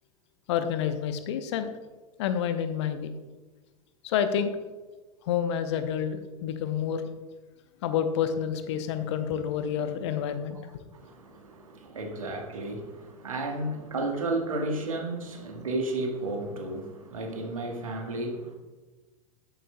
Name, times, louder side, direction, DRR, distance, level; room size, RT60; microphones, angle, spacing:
voice 1, 0.5-1.7 2.2-3.1 4.0-4.5 5.2-7.0 7.8-10.8, left 8 dB, 50° left, 10 dB, 0.8 m, -29 dB
voice 2, 10.9-18.5, right 2 dB, 70° right, 2 dB, 1.6 m, -33 dB
10.0 x 9.0 x 2.2 m, 1.3 s
figure-of-eight pair, 85°, 18 cm